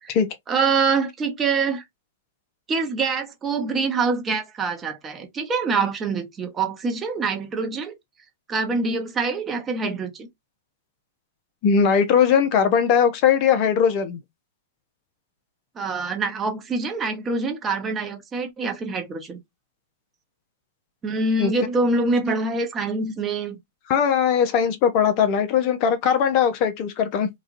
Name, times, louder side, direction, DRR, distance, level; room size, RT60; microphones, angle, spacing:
voice 1, 0.5-1.8 2.7-8.0 8.5-10.3 15.7-19.4 21.0-23.6, right 4 dB, 20° right, 0.9 m, -25 dB
voice 2, 11.6-14.2 21.4-21.5 23.9-27.3, left 7 dB, 45° left, 0.8 m, -19 dB
3.0 x 2.4 x 2.6 m
hypercardioid pair, 110°, 0 cm